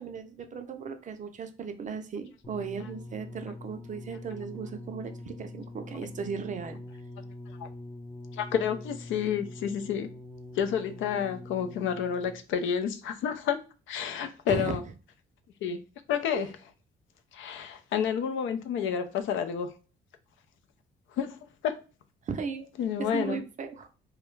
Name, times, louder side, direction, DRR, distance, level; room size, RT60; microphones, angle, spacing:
voice 1, 0.0-6.8 14.5-14.8 16.3-16.5 22.2-22.7 23.0-24.0, right 6 dB, 40° right, 0.4 m, -36 dB
sound 1, 2.4-12.6 13.4-13.5, left 2 dB, 20° left, 0.4 m, -44 dB
voice 2, 8.3-10.1 10.6-13.6 13.9-14.8 15.6-15.8 16.1-16.5 17.3-19.7 21.2-21.4 21.6-21.8 22.8-23.4, left 8 dB, 80° left, 0.4 m, -30 dB
2.3 x 2.0 x 3.0 m
cardioid pair, 90°, 20 cm